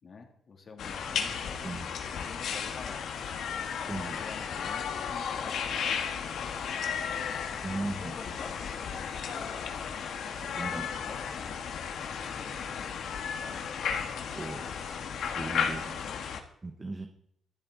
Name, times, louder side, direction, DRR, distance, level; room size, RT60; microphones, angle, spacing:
voice 1, 0.0-1.6 2.2-3.0 4.0-6.9 7.7-9.6 10.7-11.6 12.2-13.0 16.0-16.2, left 4 dB, 45° left, 2 dB, 2.9 m, -49 dB
sound 1, 0.8-16.4, left 7 dB, 75° left, 1.6 m, -34 dB
voice 2, 3.9-4.2 7.6-8.2 10.6-10.8 14.3-14.6 15.3-16.0 16.6-17.1, right 2 dB, 20° right, 4 dB, 1.2 m, -37 dB
25.5 x 8.7 x 4.0 m, 0.69 s
cardioid pair, 130°, 0 cm